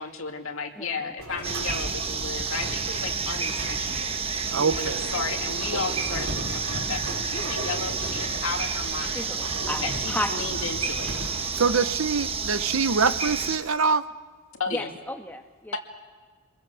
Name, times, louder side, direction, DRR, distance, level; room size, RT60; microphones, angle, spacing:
voice 1, 0.0-4.1 4.7-9.3 9.8-11.3 14.6-14.9 15.7-15.8, left 4 dB, 70° left, 3 dB, 2.4 m, -34 dB
voice 2, 0.8-1.1 4.6-4.7 9.1-10.4 14.7-15.8, left 1 dB, 10° left, 5 dB, 1.3 m, -34 dB
sound 1, 1.2-11.8, right 1 dB, 90° right, 5.5 m, -38 dB
sound 2, 1.4-13.6, right 5 dB, 25° right, 1.1 m, -30 dB
voice 3, 4.5-5.2 11.6-14.0, right 5 dB, 70° right, 12 dB, 0.9 m, -24 dB
26.5 x 22.0 x 7.0 m, 1.5 s
head